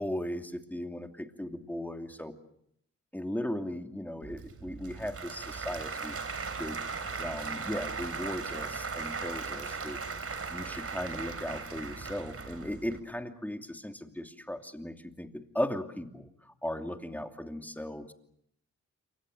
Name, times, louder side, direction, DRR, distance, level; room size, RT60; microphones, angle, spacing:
voice 1, 0.0-2.3 3.1-6.8 7.2-10.0 10.5-18.1, left 1 dB, 5° left, 5 dB, 2.8 m, -37 dB
Applause / Crowd, 4.2-13.0, right 5 dB, 50° right, 3.5 m, -38 dB
28.5 x 24.5 x 6.6 m, 0.72 s
cardioid pair, 75°, 30 cm